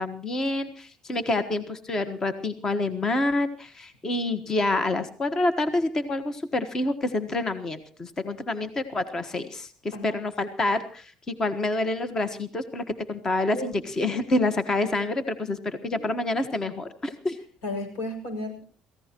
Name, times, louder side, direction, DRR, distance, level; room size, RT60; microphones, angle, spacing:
voice 1, 0.0-17.4, left 2 dB, 25° left, 10 dB, 1.4 m, -27 dB
voice 2, 17.6-18.6, left 1 dB, 90° left, 6 dB, 6.7 m, -34 dB
29.0 x 15.5 x 3.0 m, 0.41 s
cardioid pair, 120°, 2 cm